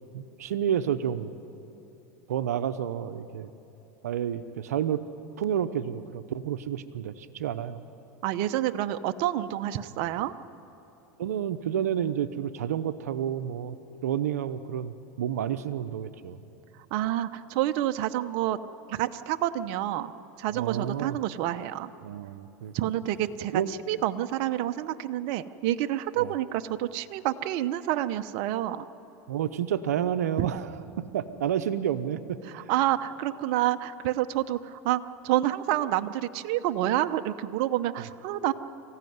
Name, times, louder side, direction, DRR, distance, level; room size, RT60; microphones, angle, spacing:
voice 1, 0.1-1.3 2.3-3.5 4.0-5.0 5.4-7.9 11.2-13.8 14.0-16.4 20.5-21.2 22.0-22.7 23.5-23.7 26.2-26.3 29.3-32.7, right 9 dB, 90° right, 11 dB, 0.8 m, -30 dB
voice 2, 8.2-10.3 16.9-18.6 18.9-20.1 20.4-21.9 22.7-23.6 23.9-28.8 30.4-30.5 32.5-38.5, right 13 dB, 60° right, 11 dB, 0.8 m, -28 dB
25.0 x 15.0 x 9.5 m, 3.0 s
supercardioid pair, 110°, 8 cm